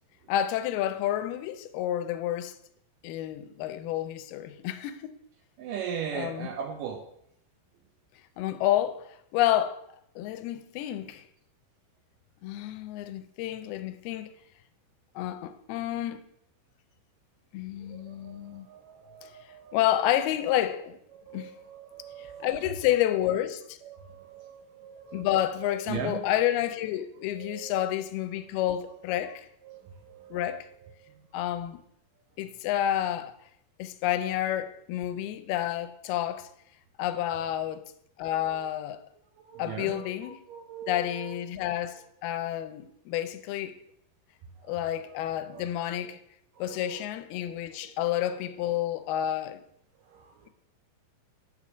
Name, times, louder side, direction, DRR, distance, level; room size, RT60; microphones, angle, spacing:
voice 1, 0.3-2.6 3.0-5.2 6.1-6.5 8.4-9.8 10.2-11.2 12.4-14.3 15.2-16.2 17.5-18.7 19.2-19.3 19.7-21.0 21.3-21.5 22.2-23.8 25.1-29.5 30.3-30.7 31.3-31.8 32.4-33.4 33.8-36.5 37.0-37.9 38.2-39.1 39.6-40.4 40.9-43.8 44.7-46.2 46.6-49.6, left 12 dB, 85° left, 2.5 m, -29 dB
voice 2, 5.6-7.1 17.7-19.8 21.1-23.0 23.8-26.3 27.4-27.9 28.8-28.9 29.2-31.3 37.3-37.8 38.2-38.7 39.4-41.7 44.6-45.2 45.5-46.1 46.5-47.0 47.7-47.8 48.2-48.4 50.0-50.5, right 8 dB, 80° right, 2.0 m, -41 dB
9.4 x 4.4 x 5.9 m
omnidirectional pair, 4.4 m